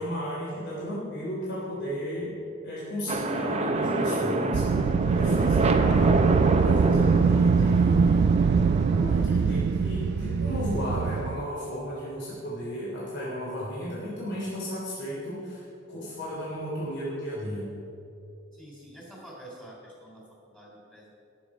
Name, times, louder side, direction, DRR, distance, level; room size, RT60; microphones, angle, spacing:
voice 1, 0.0-2.3 2.6-6.2 6.5-8.3 8.9-17.7, equal, 60° left, -7 dB, 3.4 m, -34 dB
sound 1, 3.1-9.2, right 2 dB, 30° right, 0.7 m, -28 dB
Wind, 4.5-11.5, right 5 dB, 55° right, 0.3 m, -23 dB
voice 2, 18.5-21.1, right 1 dB, 5° left, -4 dB, 3.3 m, -47 dB
17.0 x 7.1 x 4.9 m, 2.7 s
head